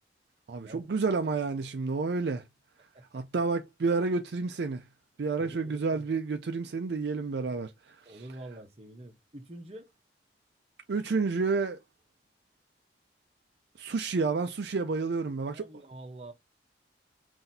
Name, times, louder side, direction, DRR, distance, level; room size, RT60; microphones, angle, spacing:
voice 1, 0.5-2.4 3.1-4.8 5.2-8.0 10.9-11.8 13.8-15.6, right 4 dB, 65° right, 0.4 m, -30 dB
voice 2, 2.9-3.4 5.4-6.2 8.0-9.9 15.5-16.3, right 1 dB, 35° right, 0.9 m, -46 dB
5.8 x 2.7 x 2.7 m
head